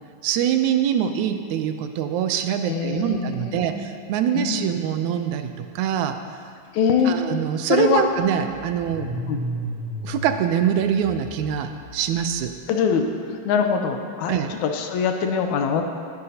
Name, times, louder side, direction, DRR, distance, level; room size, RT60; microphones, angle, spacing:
voice 1, 0.2-6.2 7.1-9.1 10.0-12.5 14.3-14.5, right 9 dB, 80° right, 7 dB, 2.0 m, -24 dB
voice 2, 2.7-3.8 4.3-4.7 6.7-7.1 7.7-8.0 9.0-9.4 12.7-15.8, left 6 dB, 80° left, 4 dB, 2.1 m, -23 dB
Car / Engine starting, 7.0-7.1 7.4-12.6, right 1 dB, 35° right, 2.4 m, -35 dB
19.0 x 10.5 x 2.9 m, 2.2 s
omnidirectional pair, 3.5 m